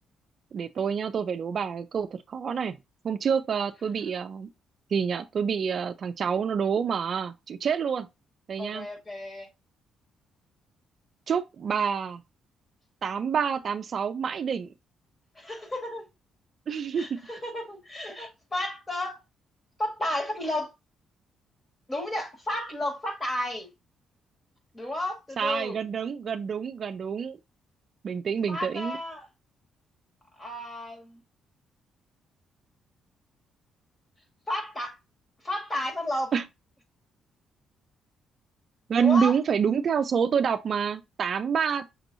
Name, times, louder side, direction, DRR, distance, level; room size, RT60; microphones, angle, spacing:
voice 1, 0.5-2.8 3.0-4.5 4.9-8.1 8.5-8.9 11.3-12.2 13.0-14.7 16.7-17.2 25.4-27.4 28.0-29.0 36.3-36.5 38.9-41.9, right 7 dB, 50° right, 0.3 m, -27 dB
voice 2, 8.6-9.5 15.4-16.1 16.9-19.2 19.8-20.7 21.9-23.7 24.7-25.8 28.5-29.3 30.4-31.2 34.5-35.0 35.4-36.3 39.0-39.3, left 1 dB, 20° left, 1.7 m, -32 dB
6.1 x 2.9 x 2.6 m
cardioid pair, 90°, 0 cm